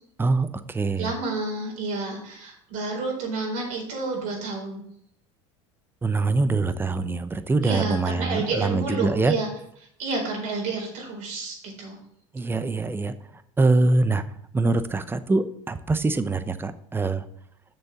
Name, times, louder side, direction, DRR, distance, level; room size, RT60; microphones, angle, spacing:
voice 1, 0.2-1.1 6.0-9.3 12.3-13.1 13.6-14.2 14.5-17.2, right 3 dB, 15° right, 12 dB, 0.7 m, -24 dB
voice 2, 1.0-4.9 7.6-9.5 10.0-12.0, right 3 dB, 60° right, -2 dB, 4.3 m, -30 dB
7.0 x 6.5 x 5.8 m, 0.71 s
supercardioid pair, 95°, 15 cm